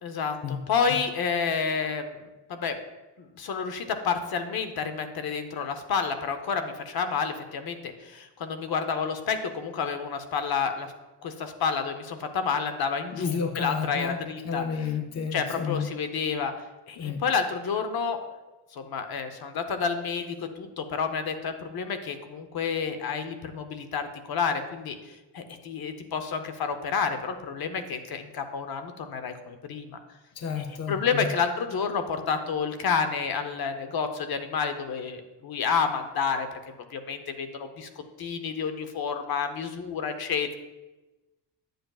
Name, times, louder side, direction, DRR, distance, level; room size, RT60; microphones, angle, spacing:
voice 1, 0.0-2.8 3.2-10.9 11.2-14.6 15.3-16.5 16.9-18.2 18.7-30.0 30.9-36.6 36.9-37.9 38.2-40.6, left 6 dB, 55° left, 8 dB, 0.8 m, -30 dB
voice 2, 13.1-14.2 14.4-15.9 17.0-17.2 30.3-31.3, left 6 dB, 35° left, 4 dB, 0.5 m, -31 dB
10.5 x 7.8 x 2.3 m, 1.1 s
cardioid pair, 155°, 43 cm